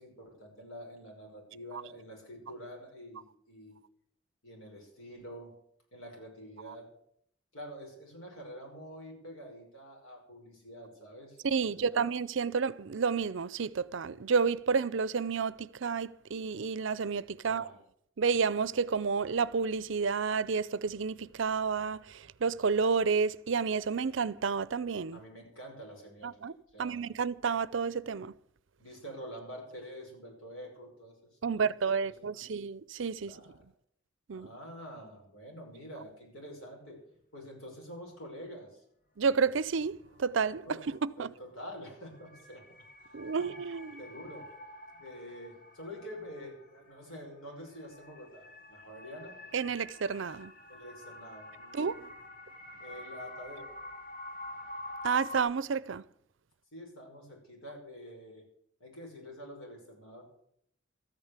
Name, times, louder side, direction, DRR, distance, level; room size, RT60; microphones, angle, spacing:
voice 1, 0.0-3.8 4.4-5.5 5.9-6.9 7.5-12.0 17.4-17.8 25.1-26.4 26.7-27.0 28.8-31.2 31.5-31.6 32.0-32.5 33.2-33.6 34.3-37.0 37.3-38.8 40.6-40.8 41.2-42.7 43.0-43.5 44.0-44.5 44.9-49.4 50.7-52.1 52.8-53.7 56.7-58.4 58.8-60.2, equal, 90° left, 5.8 m, -47 dB
voice 2, 11.4-17.7 18.2-25.2 26.2-28.3 31.4-33.3 34.3-34.5 39.2-41.3 43.1-44.0 49.5-50.5 51.7-52.1 55.0-56.0, right 5 dB, 65° right, 0.5 m, -30 dB
sound 1, 36.3-36.4 39.6-39.7 40.1-55.4, left 1 dB, 40° left, 1.8 m, -48 dB
14.0 x 9.2 x 8.1 m
head